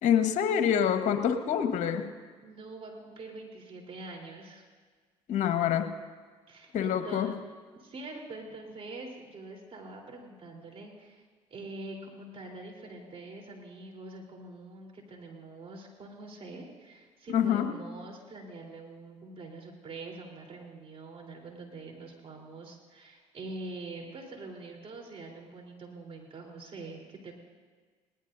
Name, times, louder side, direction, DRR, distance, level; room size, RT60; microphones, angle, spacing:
voice 1, 0.0-2.1 5.3-5.9 6.7-7.3 17.3-17.7, left 8 dB, 65° left, 7 dB, 1.3 m, -26 dB
voice 2, 2.4-4.6 6.5-7.4 7.8-11.2 11.5-27.3, right 2 dB, 45° right, 0 dB, 3.8 m, -44 dB
20.5 x 18.5 x 2.7 m, 1.5 s
supercardioid pair, 65°, 14 cm